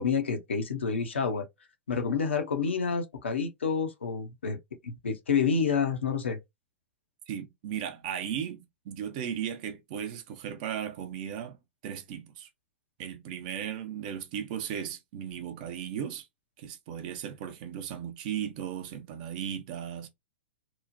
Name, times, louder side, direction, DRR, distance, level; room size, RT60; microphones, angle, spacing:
voice 1, 0.0-1.5 1.9-4.6 4.8-6.4, left 5 dB, 70° left, 0.7 m, -28 dB
voice 2, 7.3-11.6 11.8-12.5 13.0-16.3 16.6-20.1, right 9 dB, 45° right, 0.7 m, -36 dB
3.0 x 2.1 x 2.6 m
figure-of-eight pair, 105°, 6 cm